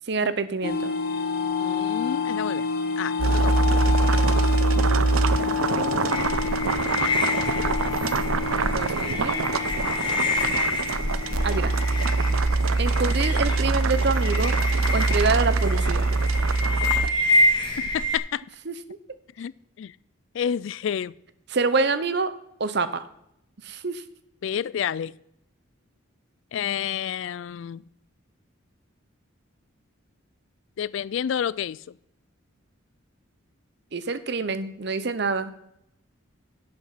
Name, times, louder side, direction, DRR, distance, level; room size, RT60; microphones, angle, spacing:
voice 1, 0.1-0.9 5.4-6.4 8.7-9.4 11.4-11.7 12.8-14.5 14.9-16.1 18.7-19.0 21.5-22.3 22.6-23.1 23.6-24.0 33.9-35.5, right 4 dB, 55° right, 0.8 m, -27 dB
sound 1, 0.6-13.7, left 6 dB, 45° left, 1.0 m, -30 dB
voice 2, 1.6-2.7 3.0-3.6 17.8-18.4 19.4-19.5 19.8-19.9 20.3-21.1 24.4-25.1 26.5-27.8 30.8-31.8, left 8 dB, 65° left, 0.3 m, -29 dB
sound 2, 3.2-17.1, right 3 dB, 85° right, 0.6 m, -24 dB
sound 3, 6.1-18.2, left 2 dB, 25° left, 1.6 m, -27 dB
11.5 x 8.8 x 5.7 m
head